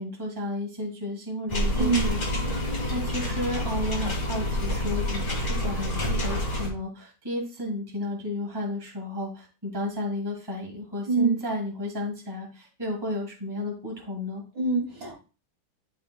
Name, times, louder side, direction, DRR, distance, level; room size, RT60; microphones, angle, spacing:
voice 1, 0.0-14.4, left 1 dB, 10° right, -1 dB, 1.9 m, -33 dB
sound 1, 1.5-6.7, left 1 dB, 25° left, 2.0 m, -28 dB
voice 2, 1.8-2.1 11.1-11.3 14.5-15.2, right 4 dB, 65° right, -2 dB, 3.1 m, -24 dB
12.0 x 5.0 x 2.2 m, 0.33 s
omnidirectional pair, 2.1 m